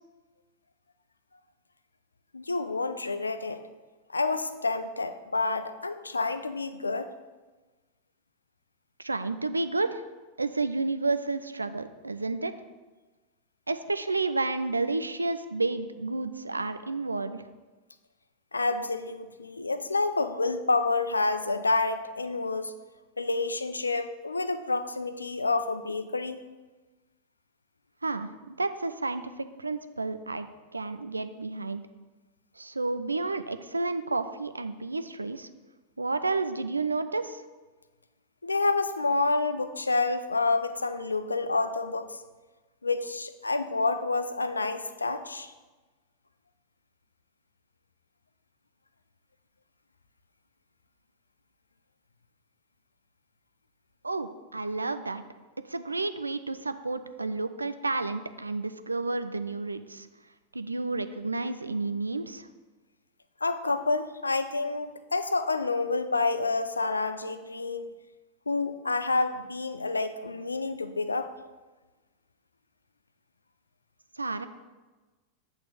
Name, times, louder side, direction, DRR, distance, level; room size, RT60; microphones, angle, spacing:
voice 1, 2.3-3.6 4.1-7.1 18.5-22.7 23.2-26.4 38.4-42.2 42.8-45.5 63.4-67.9 68.5-71.3, left 3 dB, 80° left, 10 dB, 0.5 m, -28 dB
voice 2, 9.0-10.0 10.4-12.5 13.7-17.4 28.0-30.5 30.7-31.8 32.6-35.5 36.0-37.4 54.0-55.2 55.7-60.1 60.5-62.5 74.2-74.5, right 3 dB, 80° right, 10 dB, 0.4 m, -31 dB
8.5 x 3.5 x 6.4 m, 1.2 s
figure-of-eight pair, 90°, 0 cm